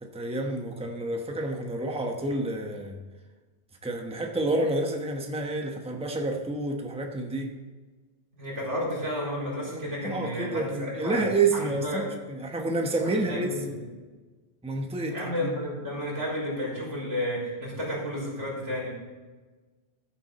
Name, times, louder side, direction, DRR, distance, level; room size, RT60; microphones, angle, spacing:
voice 1, 0.0-3.0 3.8-7.6 9.7-13.5 14.6-15.6, right 2 dB, 5° right, 2 dB, 1.0 m, -29 dB
voice 2, 8.3-11.2 11.5-12.1 13.0-13.8 15.1-18.9, equal, 90° right, -6 dB, 4.6 m, -32 dB
14.0 x 7.4 x 4.2 m, 1.3 s
omnidirectional pair, 1.2 m